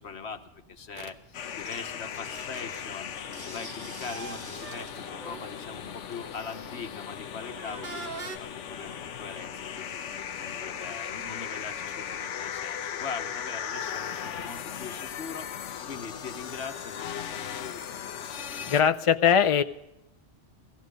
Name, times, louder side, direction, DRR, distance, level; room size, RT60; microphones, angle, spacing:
voice 1, 0.0-3.1 3.4-18.0, left 5 dB, 65° left, 7 dB, 1.4 m, -41 dB
sound 1, 1.0-1.1 3.2-5.8 6.4-6.6 7.5-8.4, right 4 dB, 45° right, 1.2 m, -42 dB
sound 2, 1.3-18.8, left 8 dB, 85° left, 1.1 m, -37 dB
sound 3, 1.5-10.7, equal, 20° right, 2.3 m, -51 dB
voice 2, 18.7-19.6, left 8 dB, 40° left, 10 dB, 0.5 m, -21 dB
18.5 x 14.5 x 5.1 m, 0.87 s
omnidirectional pair, 1.2 m